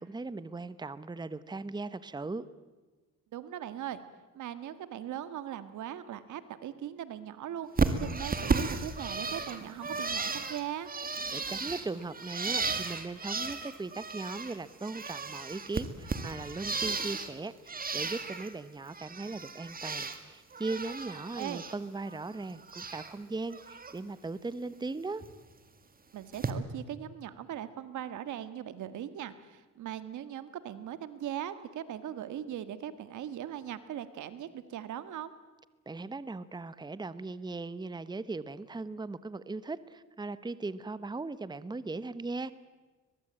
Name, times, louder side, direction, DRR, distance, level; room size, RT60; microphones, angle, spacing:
voice 1, 0.0-2.5 11.3-25.2 35.9-42.5, right 3 dB, 15° right, 16 dB, 0.9 m, -38 dB
voice 2, 3.3-4.0 4.3-10.9 21.4-21.6 26.1-35.3, right 10 dB, 75° right, 13 dB, 1.7 m, -39 dB
Bird, 7.8-14.6 14.8-17.3 17.7-18.5 18.8-20.2 20.5-21.8 22.1-23.1 23.5-23.9 25.2-25.3 26.3-26.5, right 4 dB, 30° right, 2.2 m, -34 dB
22.0 x 22.0 x 8.9 m, 1.3 s
cardioid pair, 90°, 30 cm